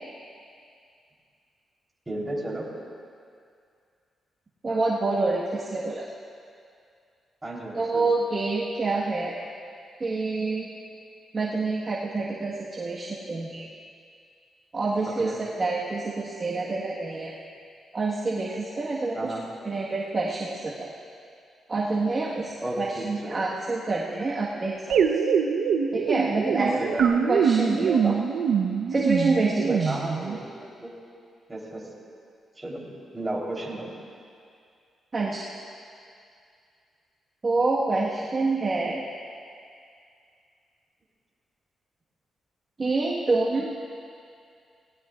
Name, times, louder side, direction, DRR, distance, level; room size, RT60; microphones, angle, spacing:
voice 1, 2.1-2.7 7.4-8.1 15.2-15.4 19.1-19.4 22.6-23.4 26.6-27.2 29.9-30.9 31.5-31.9 32.6-32.9 33.1-33.9, right 1 dB, 15° right, -4 dB, 3.6 m, -33 dB
voice 2, 4.6-6.1 7.7-9.4 10.0-10.7 11.3-13.7 14.7-15.3 15.6-17.3 17.9-19.3 19.6-20.9 21.7-25.0 25.9-26.7 27.3-28.2 28.9-29.9 35.1-35.5 37.4-39.0 42.8-43.7, right 3 dB, 35° right, -5 dB, 1.5 m, -27 dB
sound 1, 24.9-30.4, right 6 dB, 80° right, 0.9 m, -24 dB
19.0 x 18.0 x 2.5 m, 2.4 s
cardioid pair, 95°, 0 cm